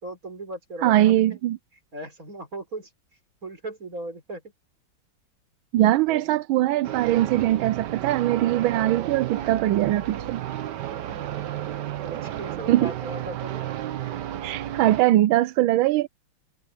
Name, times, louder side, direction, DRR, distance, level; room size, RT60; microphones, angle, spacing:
voice 1, 0.0-1.4 1.9-2.9 3.4-4.4 6.1-6.4 11.6-14.1, right 2 dB, 45° right, 5.2 m, -38 dB
voice 2, 0.8-1.6 5.7-10.4 12.7-12.9 14.4-16.1, right 14 dB, 90° right, 1.4 m, -21 dB
sound 1, 6.8-15.0, right 12 dB, 65° right, 1.4 m, -32 dB
omnidirectional pair, 2.1 m